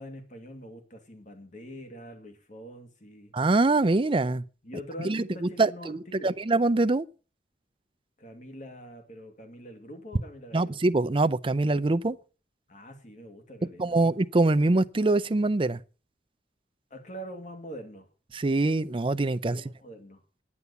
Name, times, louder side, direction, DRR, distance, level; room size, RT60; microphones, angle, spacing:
voice 1, 0.0-3.3 4.6-6.4 8.2-10.8 12.7-14.0 16.9-18.1 19.4-20.2, equal, 45° left, 2.3 m, -44 dB
voice 2, 3.3-4.4 5.0-7.1 10.5-12.2 13.8-15.8 18.3-19.6, right 2 dB, 30° right, 0.5 m, -24 dB
9.7 x 9.6 x 7.0 m
head